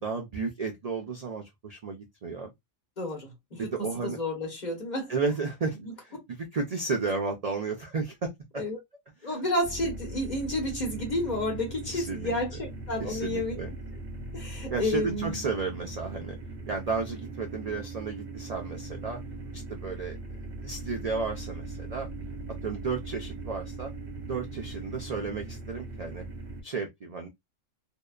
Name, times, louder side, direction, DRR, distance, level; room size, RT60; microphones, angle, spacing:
voice 1, 0.0-2.5 3.6-4.2 5.1-8.6 9.2-9.4 11.9-12.3 13.0-13.7 14.7-16.4 16.7-19.2 19.5-20.2 20.6-22.1 22.6-23.9 24.3-26.2 26.6-27.3, right 4 dB, 85° right, 0.3 m, -33 dB
voice 2, 3.0-5.1 5.8-5.9 8.6-8.8 9.2-13.6 14.3-15.4, left 1 dB, 40° left, 1.1 m, -31 dB
sound 1, 9.6-26.6, right 2 dB, 60° right, 1.1 m, -40 dB
2.8 x 2.1 x 2.3 m
omnidirectional pair, 1.3 m